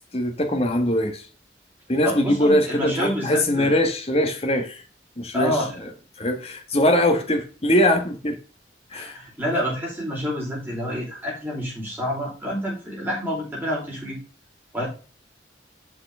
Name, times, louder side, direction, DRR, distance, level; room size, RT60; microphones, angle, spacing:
voice 1, 0.1-1.3 1.9-4.8 5.2-5.6 6.2-8.4 8.9-9.2, left 1 dB, 30° left, 1.3 m, -22 dB
voice 2, 2.0-3.8 5.3-5.7 8.9-14.2 14.7-14.9, equal, 10° right, 4.0 m, -28 dB
7.9 x 5.6 x 3.5 m
head